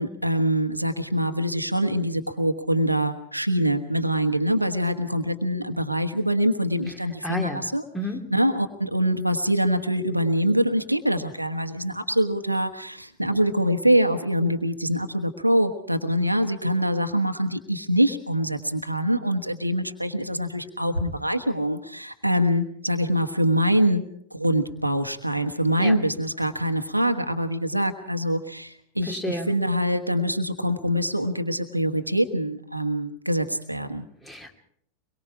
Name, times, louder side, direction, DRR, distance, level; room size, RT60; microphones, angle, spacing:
voice 1, 0.0-7.8 8.3-24.0 24.3-34.1, equal, 90° right, 7 dB, 1.3 m, -24 dB
voice 2, 7.2-7.7 7.9-8.2 25.8-25.9 29.1-29.5 34.2-34.5, right 1 dB, 10° left, 4 dB, 2.7 m, -30 dB
24.0 x 22.5 x 4.8 m, 0.67 s
figure-of-eight pair, 90°, 0 cm